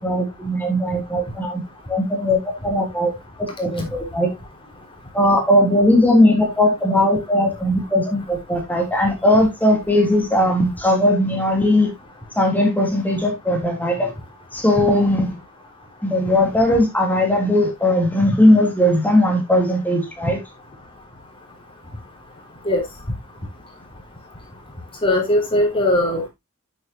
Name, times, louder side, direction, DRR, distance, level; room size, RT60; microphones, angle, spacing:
voice 1, 0.0-1.6 1.9-3.1 3.6-4.3 5.1-11.9 12.4-14.1 14.5-15.3 16.0-20.4, left 1 dB, 10° left, 3.3 m, -18 dB
voice 2, 25.0-26.3, left 1 dB, 25° left, 3.7 m, -19 dB
9.5 x 7.8 x 2.9 m
head